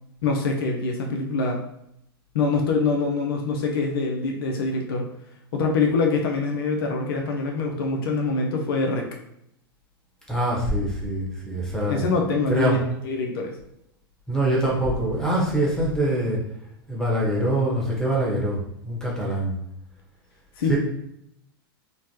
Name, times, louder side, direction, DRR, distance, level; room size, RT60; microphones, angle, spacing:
voice 1, 0.2-1.6 2.3-5.1 5.5-9.1 11.8-12.8 13.0-13.6 20.6-20.8, left 3 dB, 65° left, 1 dB, 0.5 m, -24 dB
voice 2, 10.3-12.0 12.5-12.8 14.3-16.4 16.9-19.5 20.7-20.8, right 1 dB, 5° left, -4 dB, 1.0 m, -24 dB
3.1 x 2.1 x 2.8 m, 0.78 s
hypercardioid pair, 100°, 13 cm